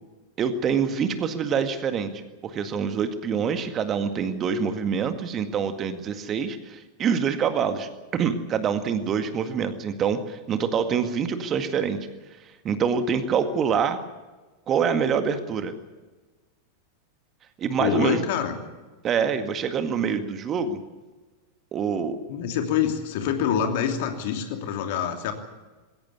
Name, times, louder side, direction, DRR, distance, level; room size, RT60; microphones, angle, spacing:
voice 1, 0.4-2.1 2.4-12.0 12.6-14.0 14.7-15.7 17.6-18.2 19.0-20.8 21.7-22.2, right 6 dB, 30° right, 9 dB, 1.9 m, -25 dB
voice 2, 17.7-18.6 22.3-25.3, left 8 dB, 50° left, 5 dB, 2.8 m, -26 dB
21.0 x 17.0 x 8.4 m, 1.2 s
figure-of-eight pair, 90°, 0 cm